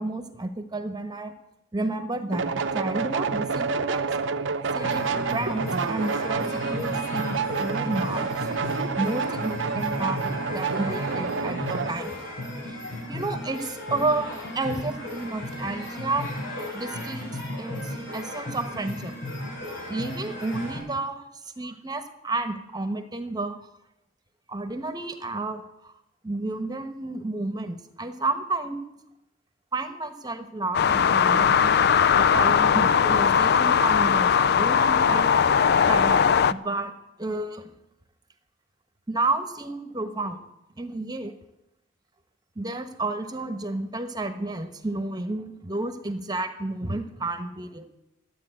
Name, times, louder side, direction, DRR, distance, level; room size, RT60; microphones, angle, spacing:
voice 1, 0.0-1.3 1.7-4.1 4.7-8.5 9.0-12.2 12.6-12.8 13.1-16.3 16.7-19.1 19.9-21.2 21.6-23.5 24.5-25.9 26.2-28.8 29.7-31.7 32.2-35.3 35.9-36.9 37.2-37.7 39.1-40.4 40.8-41.3 42.6-47.9, right 2 dB, 20° right, 8 dB, 1.1 m, -31 dB
sound 1, 2.3-12.0, right 5 dB, 70° right, 0.8 m, -28 dB
sound 2, 4.8-20.8, left 1 dB, 85° left, 7.0 m, -35 dB
sound 3, 30.7-36.5, left 7 dB, 55° left, 0.4 m, -19 dB
12.5 x 8.8 x 8.8 m, 0.89 s
head